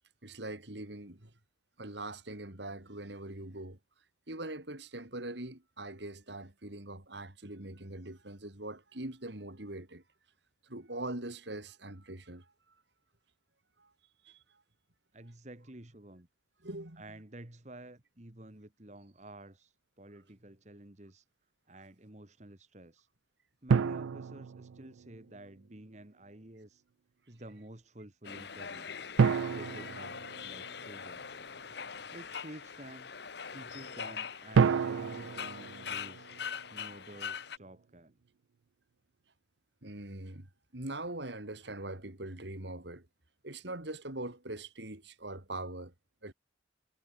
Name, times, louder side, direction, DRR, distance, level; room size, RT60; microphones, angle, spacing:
voice 1, 0.2-1.3 1.8-3.8 4.3-10.0 10.6-12.5 13.8-13.9 14.2-14.4 16.6-17.0 28.8-28.9 39.8-40.5 40.7-43.1 43.4-45.9 46.2-46.3, right 2 dB, 65° right, 3.1 m, -42 dB
voice 2, 15.1-16.3 17.0-21.3 21.7-23.1 23.6-26.8 27.3-29.0 29.4-31.3 32.1-33.1 33.5-36.3 36.7-38.2, right 1 dB, 35° right, 1.7 m, -51 dB
sound 1, 23.7-25.3 29.2-31.1 34.5-36.8, right 6 dB, 85° right, 0.4 m, -30 dB
sound 2, 28.2-37.6, left 6 dB, 60° left, 1.0 m, -42 dB
head